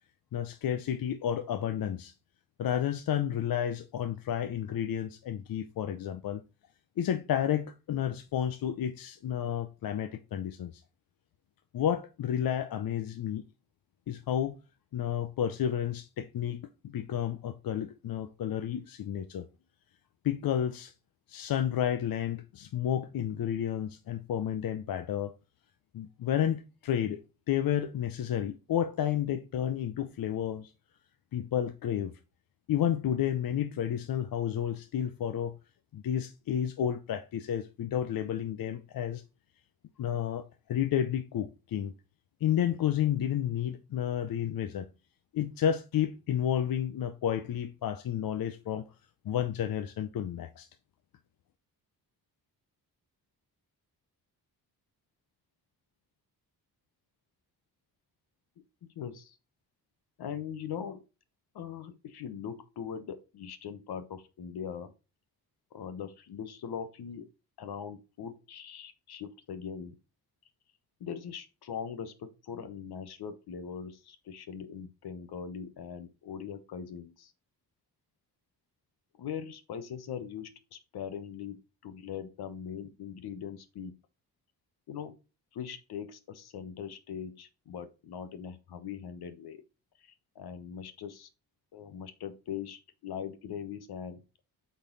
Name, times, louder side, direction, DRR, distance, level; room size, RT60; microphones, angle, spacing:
voice 1, 0.3-2.1 2.6-6.4 7.0-10.8 11.7-13.4 14.1-14.6 14.9-19.5 20.2-20.9 21.3-25.3 25.9-30.7 31.3-32.2 32.7-35.6 35.9-39.2 40.0-40.4 40.7-41.9 42.4-44.9 45.3-48.8 49.2-50.7, left 10 dB, 65° left, 0.7 m, -31 dB
voice 2, 58.9-59.4 60.2-61.0 61.5-64.9 65.7-67.3 67.6-70.0 71.0-77.3 79.2-84.0 84.9-85.2 85.5-89.6 90.0-91.3 91.7-94.2, left 7 dB, 80° left, 1.1 m, -41 dB
8.4 x 4.0 x 4.0 m
wide cardioid pair, 135°, 38 cm